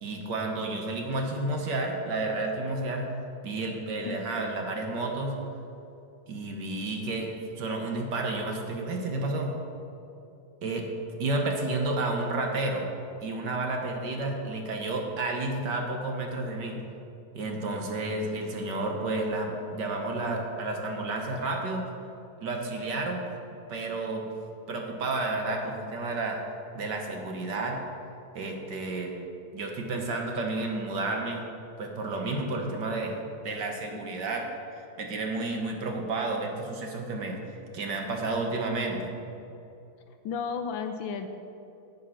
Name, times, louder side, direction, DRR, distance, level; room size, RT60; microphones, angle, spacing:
voice 1, 0.0-3.1 3.4-5.4 6.3-7.3 7.6-9.5 10.6-10.9 11.2-12.9 13.2-16.8 17.3-21.8 22.4-23.2 23.7-24.3 24.7-26.4 26.7-27.8 28.4-29.1 29.5-31.4 31.8-33.2 33.4-34.5 34.8-37.4 37.7-39.1, right 2 dB, 60° right, 2 dB, 1.6 m, -31 dB
voice 2, 40.2-41.3, left 6 dB, 75° left, 7 dB, 1.3 m, -33 dB
10.0 x 8.2 x 5.7 m, 2.7 s
omnidirectional pair, 2.3 m